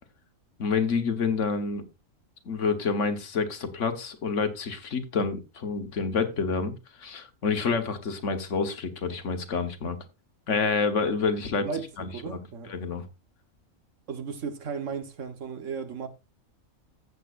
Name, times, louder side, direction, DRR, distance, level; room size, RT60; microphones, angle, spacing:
voice 1, 0.6-1.8 2.5-6.7 7.0-10.0 10.5-11.7 12.0-12.4 12.7-13.0, left 5 dB, 65° left, 1.5 m, -28 dB
voice 2, 12.1-12.8 14.1-16.1, right 6 dB, 70° right, 1.5 m, -35 dB
14.5 x 7.7 x 2.5 m
omnidirectional pair, 1.4 m